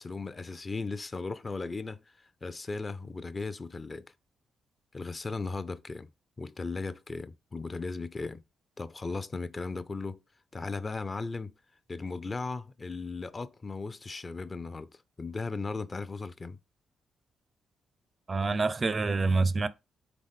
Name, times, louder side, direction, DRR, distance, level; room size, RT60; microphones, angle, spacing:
voice 1, 0.0-2.0 2.4-4.1 4.9-6.1 6.4-8.4 8.8-10.2 10.5-11.6 11.9-14.9 15.2-16.6, left 3 dB, 35° left, 0.4 m, -36 dB
voice 2, 18.3-19.7, right 3 dB, 35° right, 0.4 m, -26 dB
4.0 x 3.5 x 3.5 m
hypercardioid pair, 40°, 0 cm